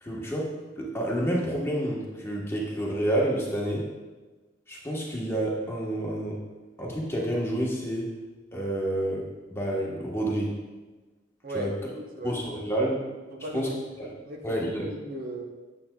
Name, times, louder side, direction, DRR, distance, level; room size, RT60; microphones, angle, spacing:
voice 1, 0.0-0.5 0.8-3.9 4.7-6.4 6.8-8.1 8.5-10.6 11.5-11.7 12.2-13.0 13.5-13.7 14.0-14.1 14.4-14.9, right 1 dB, 15° left, -3 dB, 1.1 m, -29 dB
voice 2, 11.4-12.6 13.3-13.7 14.3-15.5, right 1 dB, 50° right, 1 dB, 0.8 m, -37 dB
8.5 x 7.6 x 2.3 m, 1.2 s
head